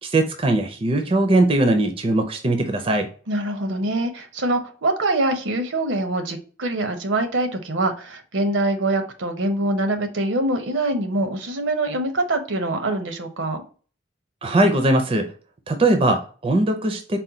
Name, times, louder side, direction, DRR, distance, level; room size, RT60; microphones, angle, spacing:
voice 1, 0.0-3.1 14.4-15.3 15.7-17.2, right 2 dB, 30° right, 0.4 m, -20 dB
voice 2, 3.3-13.6, right 2 dB, 75° right, 0.7 m, -24 dB
4.2 x 2.2 x 3.7 m
head